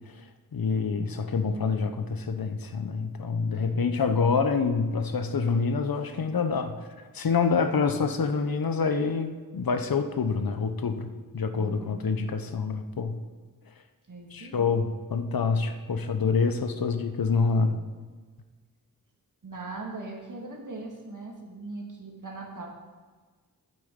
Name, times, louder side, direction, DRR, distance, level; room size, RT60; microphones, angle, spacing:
voice 1, 0.5-6.9 7.1-13.2 14.3-17.8, left 5 dB, 75° left, 8 dB, 0.8 m, -27 dB
voice 2, 11.5-12.0 14.1-14.7 19.4-22.7, right 3 dB, 60° right, 0 dB, 2.1 m, -40 dB
9.6 x 7.8 x 5.2 m, 1.4 s
wide cardioid pair, 75°, 36 cm